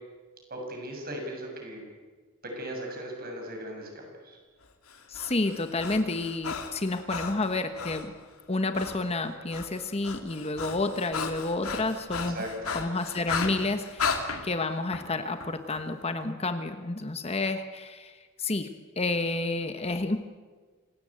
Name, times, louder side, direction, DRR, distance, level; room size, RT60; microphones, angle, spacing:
voice 1, 0.5-1.8 2.6-4.4 12.1-12.7, right 1 dB, 45° right, 1 dB, 7.1 m, -38 dB
Breathing, 4.9-8.1 8.7-9.0 9.3-14.2, left 5 dB, 90° left, 2.7 m, -35 dB
voice 2, 5.1-8.1 8.5-12.4 12.7-18.7 19.0-20.2, left 2 dB, 30° left, 8 dB, 1.2 m, -30 dB
sound 1, 13.4-16.3, left 4 dB, 75° left, 2.3 m, -43 dB
26.5 x 18.0 x 8.8 m, 1.4 s
head